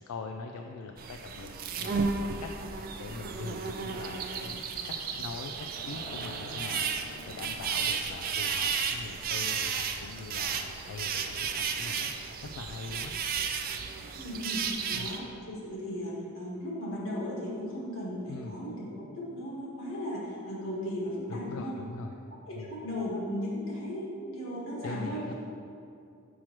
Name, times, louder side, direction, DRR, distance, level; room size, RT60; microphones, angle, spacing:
voice 1, 0.0-1.5 1.8-6.9 7.2-12.1 12.4-13.1 14.9-15.1 18.3-18.6 21.3-22.2 22.5-22.7 24.8-25.3, left 3 dB, 85° left, 3 dB, 0.3 m, -42 dB
sound 1, 1.0-15.2, right 6 dB, 45° right, 0.3 m, -33 dB
sound 2, 5.7-10.1, equal, 35° left, 0.7 m, -47 dB
voice 2, 14.2-21.8 22.5-25.3, left 1 dB, 65° left, -5 dB, 1.5 m, -36 dB
6.2 x 5.8 x 3.0 m, 2.5 s
head